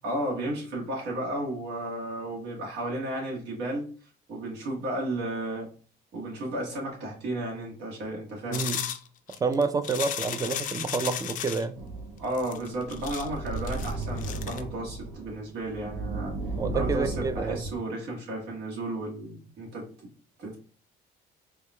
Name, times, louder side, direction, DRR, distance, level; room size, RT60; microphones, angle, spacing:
voice 1, 0.0-3.9 4.3-5.7 6.1-8.6 12.2-16.3 16.7-20.1 20.4-20.6, right 1 dB, 85° right, 1.3 m, -33 dB
sound 1, 8.5-11.6 12.3-14.6, left 9 dB, 50° left, 0.4 m, -34 dB
voice 2, 8.5-8.8 9.3-11.7 16.6-17.6, right 4 dB, 20° right, 0.4 m, -28 dB
sound 2, 11.7-17.8, right 2 dB, 65° right, 0.7 m, -35 dB
4.5 x 2.3 x 2.2 m
cardioid pair, 110°, 17 cm